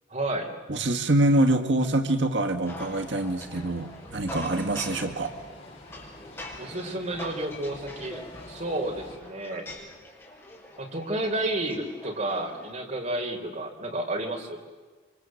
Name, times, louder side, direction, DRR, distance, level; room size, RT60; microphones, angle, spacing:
voice 1, 0.1-0.5 6.6-8.2 8.5-9.7 10.8-14.6, right 1 dB, 40° right, 2 dB, 3.9 m, -31 dB
voice 2, 0.7-5.3, right 1 dB, 75° right, 6 dB, 1.8 m, -25 dB
sound 1, 2.6-9.2, left 1 dB, 35° left, 5.4 m, -48 dB
sound 2, 2.7-12.7, left 2 dB, 15° left, 6.9 m, -44 dB
28.0 x 25.5 x 7.7 m, 1.4 s
head